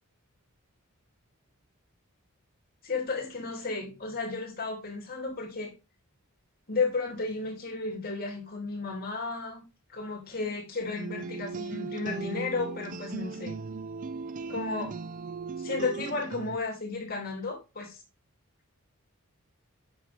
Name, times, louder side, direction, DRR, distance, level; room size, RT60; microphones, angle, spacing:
voice 1, 2.8-5.7 6.7-9.6 9.9-13.6 14.5-14.9 15.6-18.0, left 4 dB, 40° left, 2.6 m, -33 dB
sound 1, 11.0-16.6, right 4 dB, 35° right, 0.3 m, -37 dB
8.0 x 6.4 x 3.4 m
head